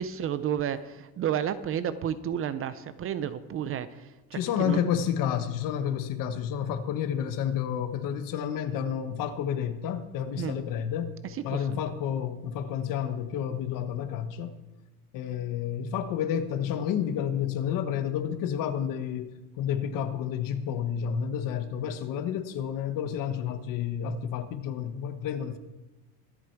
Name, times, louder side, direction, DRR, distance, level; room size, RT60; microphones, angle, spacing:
voice 1, 0.0-4.8 10.4-10.5 11.5-11.8, right 9 dB, 35° right, 0.6 m, -31 dB
voice 2, 4.3-11.1 11.4-14.5 15.1-25.6, left 9 dB, 55° left, 1.3 m, -30 dB
24.0 x 8.5 x 4.6 m
cardioid pair, 165°, 40 cm